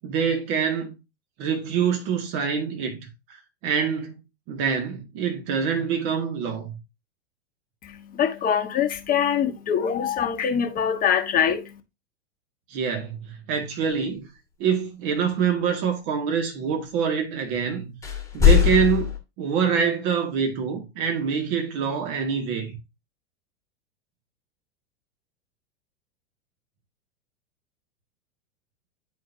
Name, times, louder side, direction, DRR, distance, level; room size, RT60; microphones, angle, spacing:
voice 1, 0.0-0.9 1.4-3.4 3.6-4.2 4.5-6.8 12.7-14.3 14.6-18.0 18.3-22.8, right 6 dB, 50° right, 1.9 m, -25 dB
voice 2, 7.8-11.6, left 8 dB, 25° left, 1.0 m, -24 dB
sound 1, 18.0-19.2, left 9 dB, 10° left, 1.5 m, -19 dB
9.4 x 4.5 x 2.7 m
hypercardioid pair, 100°, 33 cm